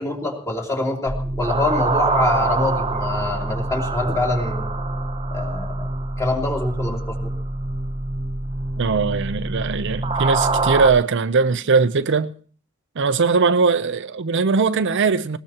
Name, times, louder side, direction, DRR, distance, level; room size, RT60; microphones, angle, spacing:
voice 1, 0.0-4.7 5.3-5.9 6.2-7.3, left 2 dB, 15° left, 3.1 m, -25 dB
sound 1, 1.1-10.9, right 2 dB, 25° right, 1.2 m, -25 dB
voice 2, 8.8-12.3 13.0-15.4, right 4 dB, 60° right, 0.6 m, -20 dB
20.0 x 19.5 x 2.9 m
head